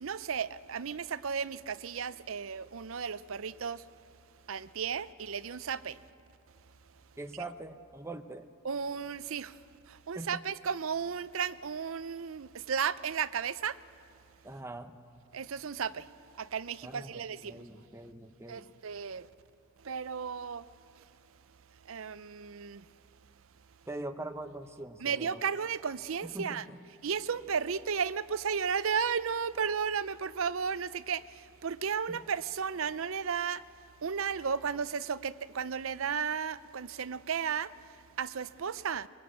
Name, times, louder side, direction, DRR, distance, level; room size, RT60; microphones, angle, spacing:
voice 1, 0.0-3.8 4.5-6.0 8.6-9.6 9.9-13.8 15.3-16.1 16.4-17.6 18.5-19.3 19.8-20.6 21.9-22.8 25.0-26.6 27.0-33.6 34.0-37.7 38.2-39.1, right 6 dB, 65° right, 0.5 m, -34 dB
voice 2, 7.2-8.5 10.1-10.4 14.4-14.9 16.8-18.7 23.9-25.4 26.2-26.8 32.1-32.2, right 2 dB, 10° right, 0.8 m, -43 dB
23.5 x 21.5 x 8.4 m
head